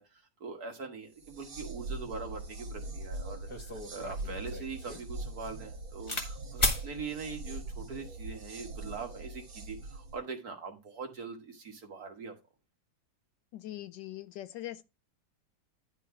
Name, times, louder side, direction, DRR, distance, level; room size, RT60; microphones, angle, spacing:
voice 1, 0.0-12.3, right 4 dB, 55° right, 1.8 m, -42 dB
sound 1, 1.1-10.2, right 2 dB, 85° right, 2.4 m, -42 dB
sound 2, 2.9-3.0 3.5-6.3 6.6-6.9 7.7-8.1, left 1 dB, 15° left, 1.4 m, -34 dB
voice 2, 13.5-14.8, left 14 dB, 75° left, 1.2 m, -42 dB
11.0 x 3.9 x 4.7 m
omnidirectional pair, 2.1 m